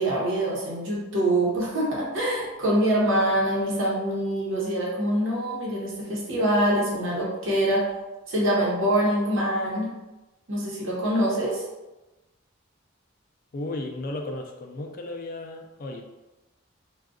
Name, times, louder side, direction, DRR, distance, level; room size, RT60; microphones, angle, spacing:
voice 1, 0.0-7.8 8.3-9.9 10.5-11.6, right 1 dB, 75° right, -4 dB, 0.9 m, -24 dB
voice 2, 13.5-16.0, left 2 dB, 45° left, 2 dB, 0.4 m, -34 dB
2.5 x 2.3 x 3.6 m, 1.1 s
head